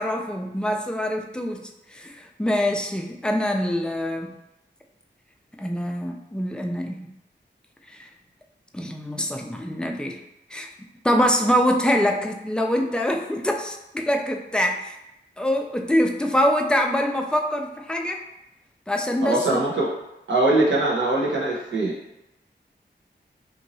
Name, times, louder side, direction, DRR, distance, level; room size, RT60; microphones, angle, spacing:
voice 1, 0.0-1.6 1.9-4.3 5.6-7.1 8.0-8.1 8.7-10.2 10.5-10.7 11.0-14.9 15.4-18.2 18.9-19.6, equal, 5° left, 2 dB, 0.4 m, -24 dB
voice 2, 19.2-19.9 20.3-21.9, right 2 dB, 85° right, -5 dB, 0.9 m, -22 dB
2.9 x 2.6 x 2.6 m, 0.89 s
cardioid pair, 45°, 19 cm